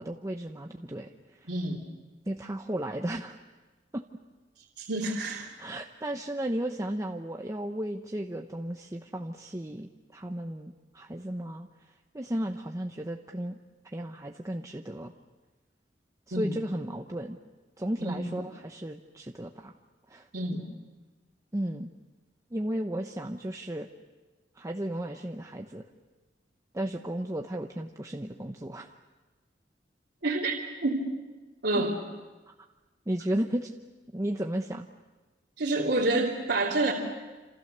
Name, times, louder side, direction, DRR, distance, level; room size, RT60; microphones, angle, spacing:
voice 1, 0.0-1.5 2.3-3.4 3.9-4.0 5.0-5.2 5.6-11.7 12.1-13.6 13.9-15.1 16.3-17.4 17.8-19.7 20.1-20.3 21.5-21.9 22.5-23.9 24.6-25.8 26.7-29.0 31.8-31.9 33.1-33.7 34.1-34.9, right 1 dB, 20° right, 3 dB, 0.9 m, -34 dB
voice 2, 1.5-1.8 4.8-5.5 16.3-16.5 18.0-18.2 20.3-20.6 30.2-30.5 30.8-31.0 31.6-32.0 35.6-36.9, right 2 dB, 70° right, -5 dB, 2.9 m, -28 dB
28.5 x 27.5 x 6.8 m, 1.2 s
head